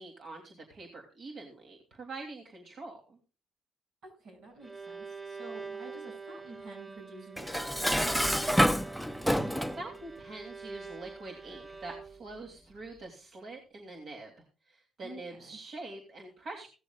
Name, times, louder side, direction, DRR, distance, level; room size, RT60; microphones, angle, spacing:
voice 1, 0.0-3.2 9.3-14.3 14.7-16.7, right 2 dB, 55° right, 1 dB, 3.0 m, -45 dB
voice 2, 4.0-8.8 15.0-15.6, right 2 dB, 75° right, 3 dB, 6.9 m, -49 dB
Bowed string instrument, 4.3-12.4, right 4 dB, 30° right, 4.1 m, -45 dB
Dishes pots and pans, 7.4-9.8, equal, ahead, 0.7 m, -27 dB
17.0 x 13.5 x 2.4 m, 0.35 s
cardioid pair, 90°, 0 cm